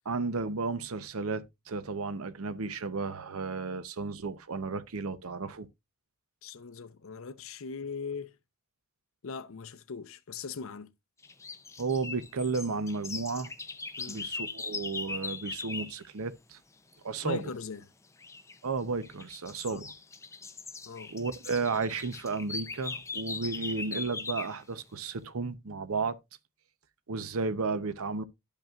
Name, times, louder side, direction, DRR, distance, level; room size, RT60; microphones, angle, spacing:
voice 1, 0.0-5.7 11.8-13.5 14.1-16.6 17.0-17.4 18.6-19.9 21.1-26.2 27.1-28.2, right 4 dB, 80° right, 0.8 m, -33 dB
voice 2, 6.4-8.3 9.2-10.9 14.0-14.3 17.2-17.8 19.7-19.8 20.9-21.1, left 5 dB, 70° left, 0.7 m, -39 dB
sound 1, 11.2-16.0 18.2-18.6 19.0-24.6, left 4 dB, 15° left, 0.5 m, -40 dB
12.0 x 5.3 x 2.4 m
head